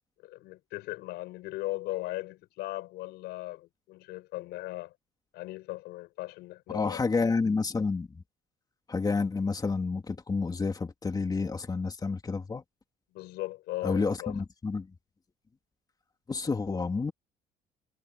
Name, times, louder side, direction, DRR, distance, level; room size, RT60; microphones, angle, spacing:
voice 1, 0.2-4.9 5.3-7.0 13.1-14.4, left 18 dB, 90° left, 5.3 m, -38 dB
voice 2, 6.7-8.2 8.9-12.6 13.8-14.9 16.3-17.1, left 4 dB, 25° left, 2.8 m, -29 dB
cardioid pair, 110°, 17 cm